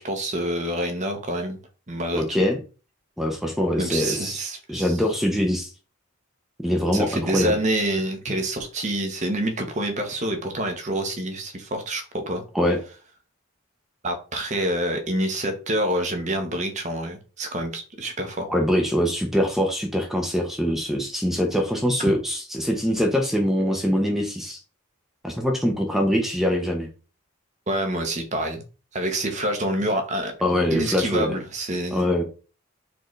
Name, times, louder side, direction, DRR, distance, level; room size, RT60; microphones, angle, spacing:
voice 1, 0.0-1.6 1.9-2.5 3.8-5.0 6.9-12.4 14.0-18.5 27.7-28.6 28.9-30.3 30.7-32.0, right 1 dB, 35° right, 1.0 m, -27 dB
voice 2, 2.1-2.6 3.2-4.4 4.7-5.7 6.6-7.5 12.5-12.8 18.5-24.6 25.2-26.9 30.4-31.4 31.9-32.2, equal, ahead, 0.7 m, -23 dB
4.5 x 3.8 x 3.1 m
head